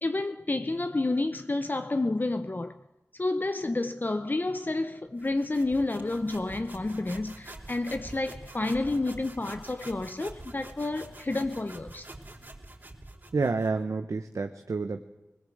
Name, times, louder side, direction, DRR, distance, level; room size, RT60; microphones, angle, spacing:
voice 1, 0.0-2.8 3.1-12.1, left 2 dB, 35° left, 0.7 m, -30 dB
sound 1, 5.2-13.8, right 1 dB, 35° right, 4.0 m, -46 dB
voice 2, 13.3-15.0, right 4 dB, 75° right, 1.0 m, -29 dB
20.5 x 19.5 x 7.9 m
wide cardioid pair, 60°, 5 cm